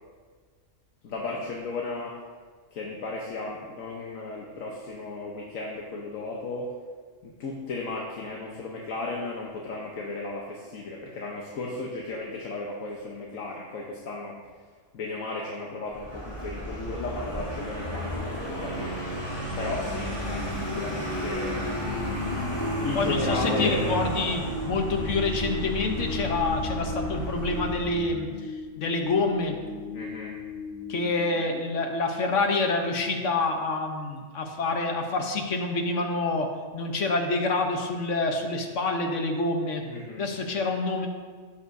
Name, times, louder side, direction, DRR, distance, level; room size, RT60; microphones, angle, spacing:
voice 1, 1.0-2.1 2.7-6.7 7.2-14.4 14.9-19.0 19.6-21.6 22.8-24.0 29.9-30.4 39.9-40.3, left 3 dB, 90° left, -2 dB, 1.4 m, -34 dB
Vehicle, 15.9-28.1, equal, 20° left, 2.6 m, -33 dB
sound 1, 20.0-32.1, left 3 dB, 40° left, 3.2 m, -37 dB
voice 2, 22.9-29.6 30.9-39.8 40.2-41.1, left 3 dB, 70° left, 3 dB, 1.3 m, -27 dB
13.0 x 8.6 x 2.7 m, 1.5 s
omnidirectional pair, 1.4 m